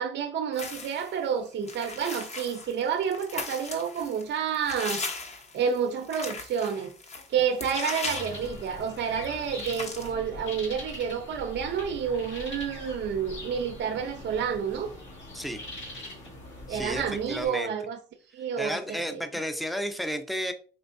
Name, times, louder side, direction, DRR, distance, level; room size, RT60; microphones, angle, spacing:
voice 1, 0.0-5.0 5.5-6.9 7.3-14.9 16.7-18.0 18.3-19.2, right 7 dB, 60° right, 0.6 m, -29 dB
sound 1, 0.5-1.2 1.7-9.0 9.2-9.3 9.6-10.1, left 3 dB, 35° left, 0.9 m, -38 dB
sound 2, 8.0-17.5, left 1 dB, 70° left, 1.9 m, -42 dB
voice 2, 16.7-17.7 18.6-20.5, equal, ahead, 0.6 m, -32 dB
4.4 x 3.2 x 2.6 m
cardioid pair, 90°, 20 cm